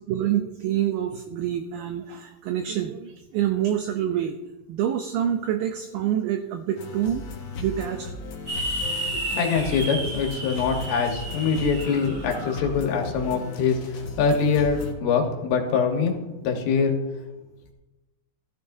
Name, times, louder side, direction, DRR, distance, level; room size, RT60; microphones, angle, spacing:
voice 1, 0.1-4.4 4.7-7.3 7.6-8.1, right 10 dB, 85° right, 7 dB, 2.0 m, -26 dB
sound 1, 6.8-14.9, left 2 dB, 60° left, 1.9 m, -36 dB
sound 2, 8.5-12.7, right 1 dB, 40° right, 5.1 m, -32 dB
voice 2, 9.4-16.2 16.4-17.0, left 5 dB, 80° left, 2 dB, 3.4 m, -24 dB
15.5 x 13.5 x 2.7 m, 1.1 s
omnidirectional pair, 4.8 m